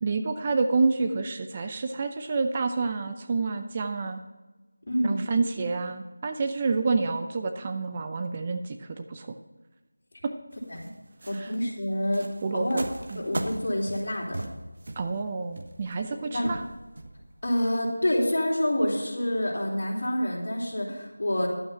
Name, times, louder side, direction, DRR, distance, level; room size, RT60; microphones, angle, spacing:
voice 1, 0.0-4.2 5.0-9.3 10.2-10.3 11.3-11.5 12.4-13.2 15.0-16.6, right 4 dB, 25° right, 6 dB, 0.6 m, -28 dB
voice 2, 4.9-5.2 10.7-10.9 11.3-12.3 12.5-12.8 13.1-14.5 16.3-16.6 17.4-21.5, equal, 55° left, -2 dB, 3.9 m, -27 dB
sound 1, 10.5-17.5, right 2 dB, 50° right, 1.2 m, -39 dB
11.5 x 8.6 x 5.8 m, 1.1 s
figure-of-eight pair, 170°, 0 cm